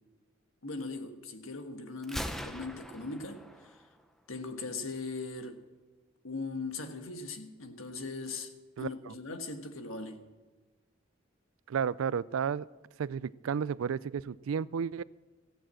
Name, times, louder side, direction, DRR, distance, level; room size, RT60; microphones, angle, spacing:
voice 1, 0.6-3.8 4.3-5.6 6.2-10.2, left 3 dB, 80° left, 1.4 m, -40 dB
Gunshot gunfire, 2.0-4.0, equal, ahead, 0.6 m, -41 dB
voice 2, 11.7-12.7 13.0-15.0, right 7 dB, 80° right, 0.4 m, -32 dB
14.5 x 8.9 x 7.6 m
head